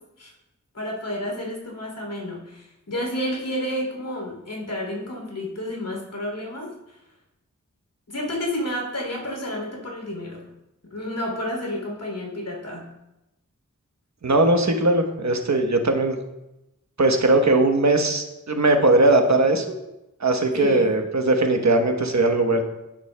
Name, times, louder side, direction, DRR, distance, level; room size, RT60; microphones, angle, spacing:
voice 1, 0.7-6.7 8.1-10.5 10.9-12.9 20.5-20.9, left 1 dB, 90° left, -1 dB, 3.1 m, -30 dB
voice 2, 14.2-16.2 17.0-19.8 20.2-22.6, right 2 dB, 60° right, 4 dB, 1.1 m, -19 dB
10.0 x 10.0 x 2.2 m, 0.93 s
wide cardioid pair, 60°, 31 cm